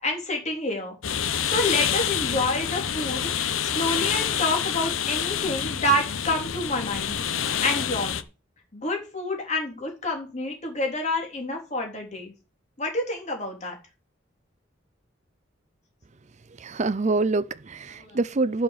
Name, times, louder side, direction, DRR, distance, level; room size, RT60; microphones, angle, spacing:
voice 1, 0.0-1.0 1.4-7.2 7.6-8.2 8.7-12.3 12.8-13.7 18.0-18.2, left 1 dB, 35° left, 3.5 m, -28 dB
sound 1, 1.0-8.2, left 8 dB, 90° left, 0.9 m, -27 dB
voice 2, 16.6-18.6, right 3 dB, 35° right, 0.5 m, -25 dB
11.0 x 5.7 x 6.7 m
head